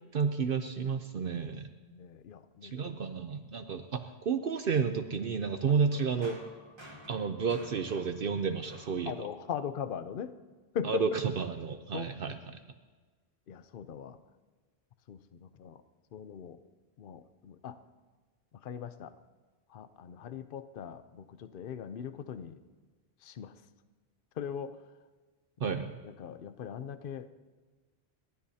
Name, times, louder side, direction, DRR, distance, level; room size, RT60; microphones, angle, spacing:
voice 1, 0.1-1.7 2.6-6.4 7.1-9.1 10.8-12.4 25.6-25.9, right 6 dB, 60° right, 7 dB, 0.9 m, -31 dB
voice 2, 1.9-2.9 3.5-3.6 5.7-5.8 9.1-10.3 10.7-11.0 11.9-12.4 13.5-14.2 15.1-15.8 16.1-16.6 17.0-17.8 18.5-19.2 19.7-22.6 23.2-23.5 24.4-24.8 25.6-27.3, left 8 dB, 60° left, 12 dB, 0.8 m, -40 dB
sound 1, 5.9-9.7, equal, 25° right, 1.6 m, -53 dB
30.0 x 12.5 x 2.8 m, 1.4 s
omnidirectional pair, 1.1 m